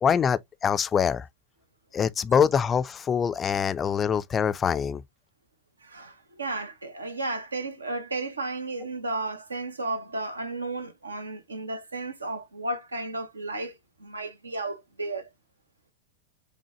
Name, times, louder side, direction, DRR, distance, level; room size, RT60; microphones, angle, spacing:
voice 1, 0.0-1.3 1.9-5.0, left 7 dB, 20° left, 0.3 m, -24 dB
voice 2, 5.8-15.3, right 2 dB, 80° right, 0.7 m, -33 dB
5.9 x 2.2 x 2.8 m
figure-of-eight pair, 90°, 0 cm